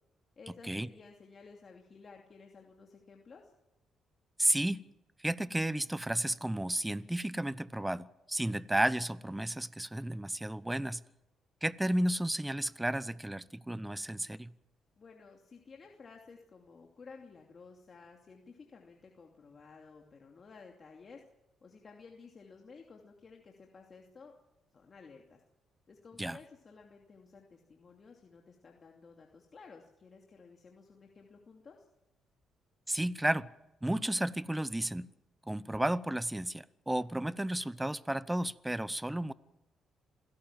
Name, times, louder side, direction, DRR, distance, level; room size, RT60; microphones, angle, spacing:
voice 1, 0.4-3.5 15.0-21.2 21.6-24.3 24.7-25.4 25.9-31.9, left 4 dB, 40° left, 2.8 m, -54 dB
voice 2, 4.4-4.9 5.2-11.0 11.6-14.5 26.2-26.4 32.9-33.5 33.8-35.1 35.5-39.3, right 1 dB, 10° right, 0.9 m, -32 dB
27.0 x 17.0 x 7.5 m
cardioid pair, 90°, 0 cm